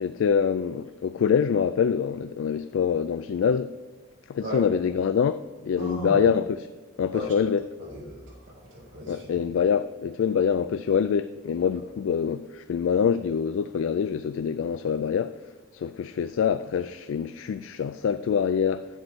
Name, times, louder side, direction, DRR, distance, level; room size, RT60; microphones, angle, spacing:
voice 1, 0.0-3.7 4.3-6.7 7.0-7.6 9.1-15.4 15.7-18.9, left 7 dB, 75° left, 0.3 m, -25 dB
voice 2, 5.8-6.3 7.1-7.3 7.8-9.4, left 1 dB, 75° right, 3.5 m, -36 dB
10.5 x 7.8 x 4.4 m
head